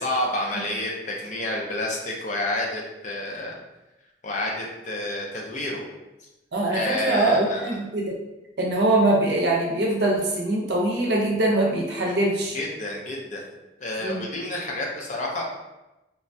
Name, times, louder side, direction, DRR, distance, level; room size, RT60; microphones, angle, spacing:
voice 1, 0.0-3.6 4.2-5.9 6.7-7.8 12.1-12.2 12.5-13.4 13.8-15.4, left 1 dB, 40° left, -1 dB, 0.5 m, -29 dB
voice 2, 6.5-8.1 8.6-12.6 14.0-14.2, right 2 dB, 65° right, -2 dB, 0.6 m, -23 dB
3.2 x 2.2 x 2.6 m, 0.98 s
head